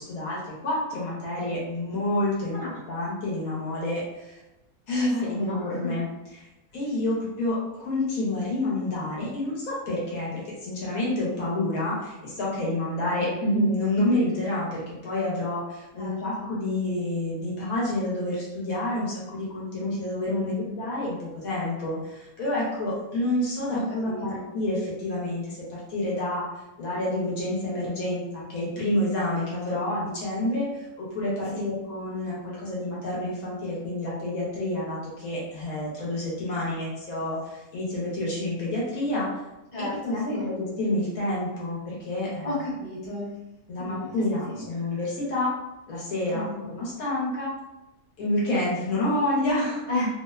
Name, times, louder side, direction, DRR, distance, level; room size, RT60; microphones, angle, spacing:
voice 1, 0.0-4.4 4.9-6.0 6.4-6.5 6.7-26.4 26.8-39.3 39.8-42.5 43.7-45.5 45.9-46.4 46.7-47.5 48.2-49.9, left 1 dB, 70° left, -5 dB, 1.2 m, -28 dB
voice 2, 4.9-6.0 13.1-13.6 16.0-16.5 20.4-20.8 23.7-24.5 31.5-31.7 39.7-40.5 42.4-43.4 43.8-45.0 46.3-46.7 49.9-50.1, left 2 dB, 25° left, -8 dB, 0.8 m, -34 dB
2.9 x 2.0 x 2.3 m, 0.98 s
omnidirectional pair, 1.6 m